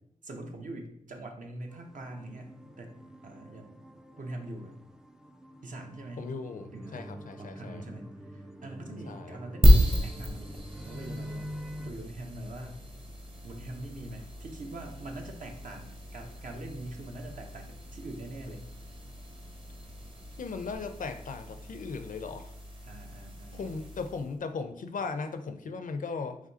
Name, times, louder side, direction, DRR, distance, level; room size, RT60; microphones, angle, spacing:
voice 1, 0.2-2.5 2.8-3.8 4.2-4.7 5.6-6.3 6.7-7.1 7.4-9.7 10.0-12.8 13.4-18.6 22.8-23.6, right 1 dB, 65° right, 2 dB, 0.8 m, -43 dB
sound 1, 1.7-11.9, equal, 5° right, 0.3 m, -46 dB
voice 2, 6.2-7.8 9.1-9.4 20.4-22.5 23.5-26.4, left 4 dB, 65° left, 8 dB, 0.5 m, -37 dB
sound 2, 9.6-24.4, equal, 35° right, 0.9 m, -31 dB
4.9 x 3.7 x 2.7 m, 0.72 s
cardioid pair, 70°, 15 cm